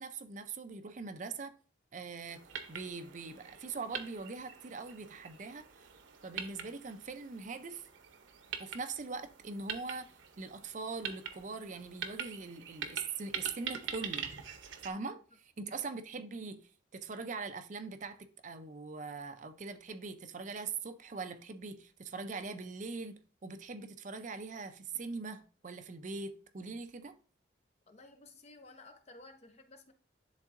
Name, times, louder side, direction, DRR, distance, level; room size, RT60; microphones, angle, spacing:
voice 1, 0.0-1.5 1.9-2.4 2.7-5.9 6.2-7.9 8.6-14.3 14.8-27.1, right 4 dB, 40° right, 0.5 m, -42 dB
sound 1, 2.3-14.9, right 7 dB, 90° right, 0.7 m, -44 dB
voice 2, 27.9-29.9, left 2 dB, 35° left, 0.7 m, -55 dB
10.5 x 3.7 x 2.5 m
head